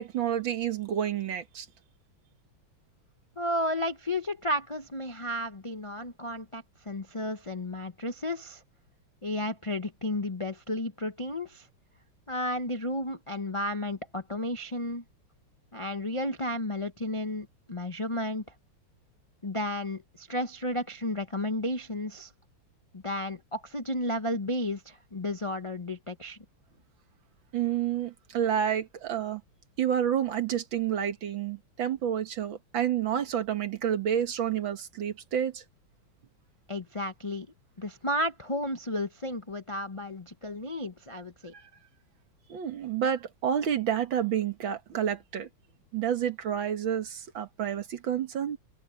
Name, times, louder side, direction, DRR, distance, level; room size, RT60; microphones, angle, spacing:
voice 1, 0.0-1.7 27.5-29.4 29.8-35.6 41.5-41.6 42.5-45.5 45.9-48.6, right 9 dB, 70° right, 2.2 m, -29 dB
voice 2, 3.4-8.6 9.2-11.7 12.3-15.0 15.7-18.4 19.4-22.3 22.9-26.4 36.7-37.5 37.8-41.5, left 1 dB, 30° left, 0.5 m, -33 dB
omnidirectional pair, 2.2 m